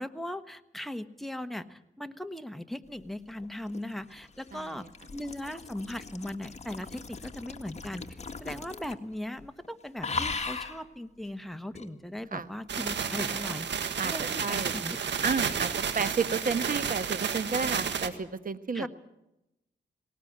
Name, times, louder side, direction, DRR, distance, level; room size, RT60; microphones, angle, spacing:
voice 1, 0.0-4.8 5.1-8.0 8.4-13.7 14.0-15.0 18.7-18.9, left 1 dB, ahead, 8 dB, 1.3 m, -38 dB
sound 1, 3.4-9.1 9.4-9.7 10.0-10.8 11.7-11.9, left 4 dB, 35° left, 1.8 m, -38 dB
voice 2, 4.5-4.9 12.3-12.5 14.0-14.7 15.2-18.9, right 5 dB, 50° right, 12 dB, 1.4 m, -32 dB
sound 2, 12.7-18.1, right 7 dB, 80° right, 1.6 m, -31 dB
19.5 x 18.5 x 8.8 m, 0.89 s
cardioid pair, 75°, 18 cm